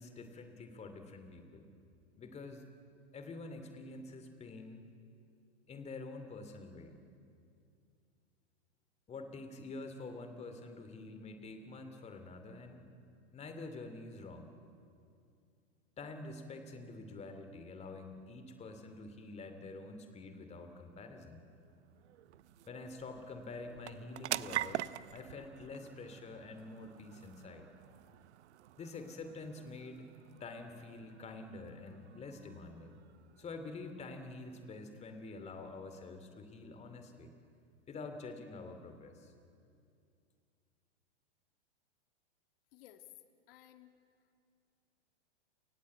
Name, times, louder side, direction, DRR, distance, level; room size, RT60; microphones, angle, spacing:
voice 1, 0.0-1.7 2.2-2.6 3.1-4.9 5.7-7.0 9.1-12.9 13.3-14.5 16.0-21.4 22.7-27.7 28.8-30.1 30.4-33.0 33.4-37.3 37.9-39.3, left 3 dB, 20° left, 7 dB, 2.5 m, -47 dB
sound 1, 20.9-35.7, right 13 dB, 75° right, 0.7 m, -46 dB
voice 2, 42.7-43.1 43.5-44.0, left 13 dB, 55° left, 7 dB, 2.1 m, -57 dB
29.0 x 19.5 x 8.4 m, 2.4 s
hypercardioid pair, 130°, 34 cm